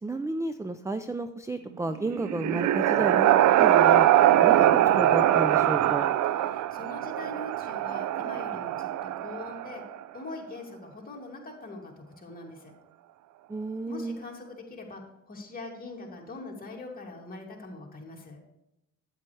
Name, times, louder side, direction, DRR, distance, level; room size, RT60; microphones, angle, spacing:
voice 1, 0.0-3.3 3.6-4.1 4.4-6.1 13.5-14.2, right 2 dB, 10° right, 9 dB, 0.4 m, -32 dB
sound 1, 2.0-9.8, right 12 dB, 70° right, 0.5 m, -22 dB
voice 2, 6.3-9.8 10.1-12.7 13.7-15.0 15.3-18.4, left 2 dB, 30° left, -1 dB, 2.4 m, -42 dB
9.1 x 8.2 x 3.3 m, 0.89 s
cardioid pair, 90°, 30 cm